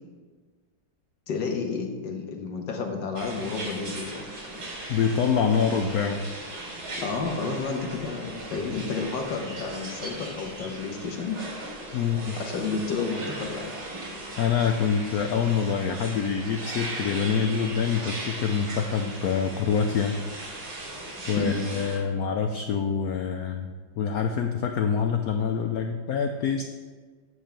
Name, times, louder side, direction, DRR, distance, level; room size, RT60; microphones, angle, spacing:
voice 1, 1.3-4.3 7.0-11.4 12.4-13.7 21.4-21.6, left 4 dB, 65° left, 2 dB, 1.6 m, -31 dB
sound 1, 3.2-22.0, right 2 dB, 85° right, 3.3 m, -38 dB
voice 2, 4.9-6.2 11.9-12.4 14.4-20.1 21.3-26.6, left 6 dB, 85° left, 5 dB, 0.8 m, -26 dB
8.1 x 7.1 x 4.4 m, 1.5 s
omnidirectional pair, 2.2 m